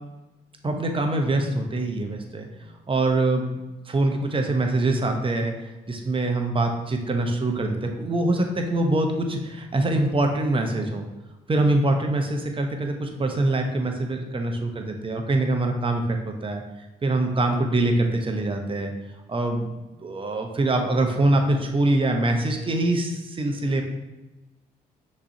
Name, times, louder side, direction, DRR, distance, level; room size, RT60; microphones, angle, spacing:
voice 1, 0.6-2.5 2.9-3.5 3.9-11.0 11.5-16.6 17.0-18.9 19.3-19.7 20.0-23.8, right 2 dB, 30° right, 3 dB, 0.9 m, -24 dB
5.9 x 3.2 x 2.8 m, 1.0 s
hypercardioid pair, 50°, 19 cm